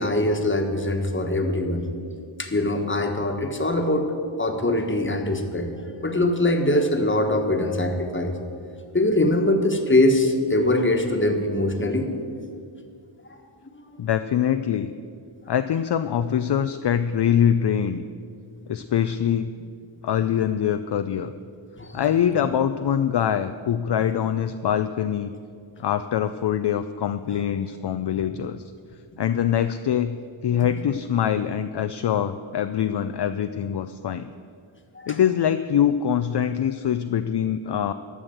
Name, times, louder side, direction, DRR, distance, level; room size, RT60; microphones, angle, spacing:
voice 1, 0.0-1.9 2.4-5.7 6.0-8.3 8.9-12.1 21.8-22.0 34.9-35.2, left 1 dB, 25° left, 4 dB, 1.4 m, -22 dB
voice 2, 14.0-14.9 15.5-18.0 18.7-19.5 20.0-21.3 21.9-25.3 25.8-28.6 29.2-30.2 30.4-34.3 35.1-37.9, left 9 dB, 55° left, 10 dB, 0.5 m, -23 dB
12.5 x 6.4 x 7.8 m, 2.3 s
wide cardioid pair, 70°, 49 cm